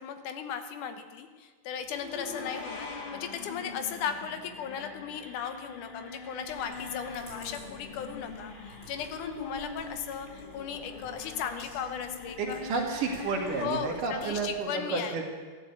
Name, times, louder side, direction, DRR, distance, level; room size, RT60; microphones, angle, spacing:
voice 1, 0.0-12.6 13.6-15.2, left 7 dB, 80° left, 9 dB, 2.4 m, -37 dB
sound 1, 1.9-13.6, left 4 dB, 60° left, 0.5 m, -43 dB
Computer keyboard, 6.4-14.6, left 2 dB, 35° left, 7.4 m, -52 dB
voice 2, 12.4-15.2, right 4 dB, 75° right, 1 dB, 3.7 m, -31 dB
13.5 x 11.5 x 8.2 m, 1.4 s
omnidirectional pair, 3.7 m